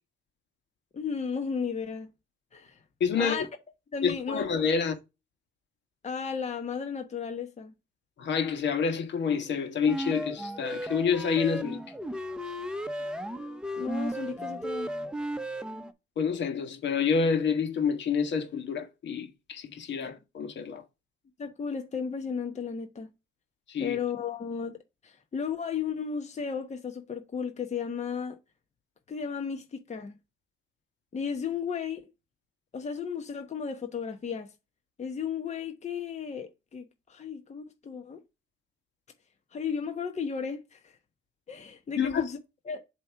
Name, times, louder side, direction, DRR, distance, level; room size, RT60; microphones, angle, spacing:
voice 1, 0.9-2.1 2.5-2.8 3.2-3.5 3.9-4.5 6.0-7.7 13.8-14.9 21.4-23.1 23.8-24.7 25.0-28.4 29.1-30.1 31.1-32.0 32.7-34.5 35.0-38.2 39.5-40.9 41.5-42.4 42.7-42.8, left 6 dB, 35° left, 1.1 m, -34 dB
voice 2, 3.0-3.4 4.0-4.9 8.2-11.8 16.2-20.8 23.7-24.0 42.0-42.2, left 6 dB, 65° left, 1.5 m, -28 dB
sound 1, 9.8-15.9, equal, 5° right, 0.9 m, -35 dB
7.5 x 2.9 x 4.6 m
cardioid pair, 90°, 20 cm